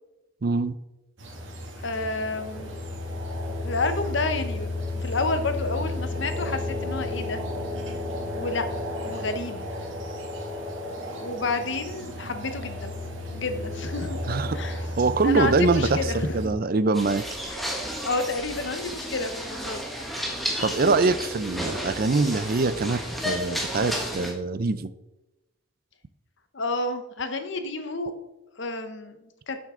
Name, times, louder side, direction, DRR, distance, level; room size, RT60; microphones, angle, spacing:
voice 1, 0.4-0.7 14.3-14.6 15.0-17.3 20.6-24.9, right 3 dB, 45° right, 14 dB, 0.4 m, -24 dB
sound 1, 1.2-16.5, left 1 dB, 60° right, 2.2 m, -33 dB
voice 2, 1.8-2.7 3.6-7.4 8.3-8.7 9.0-9.7 11.2-12.9 13.3-14.2 14.5-14.8 15.2-16.6 18.0-19.9 20.6-20.7 26.5-28.1 28.6-29.6, left 3 dB, 55° left, 8 dB, 0.9 m, -30 dB
sound 2, 16.9-24.3, equal, ahead, 1.3 m, -32 dB
11.5 x 6.5 x 3.8 m, 1.0 s
head